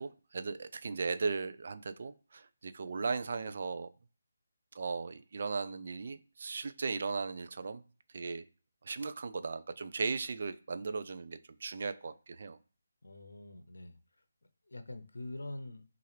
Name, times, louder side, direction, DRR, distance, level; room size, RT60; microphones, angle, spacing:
voice 1, 0.0-3.9 4.7-7.8 8.1-8.4 8.8-12.6, right 4 dB, 55° right, 0.4 m, -37 dB
voice 2, 13.0-14.0 14.7-15.8, left 2 dB, 75° left, 0.7 m, -44 dB
5.5 x 2.5 x 3.2 m
figure-of-eight pair, 150°, 0 cm